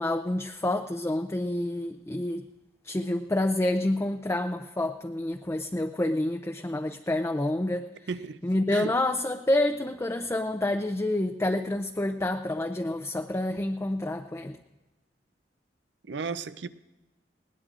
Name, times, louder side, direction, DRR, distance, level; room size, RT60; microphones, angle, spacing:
voice 1, 0.0-2.5 2.8-7.9 8.4-14.6, left 1 dB, 15° left, 0.5 m, -28 dB
voice 2, 8.1-8.4 8.7-8.9 16.1-16.7, right 4 dB, 70° right, 0.5 m, -33 dB
21.0 x 18.0 x 2.5 m
head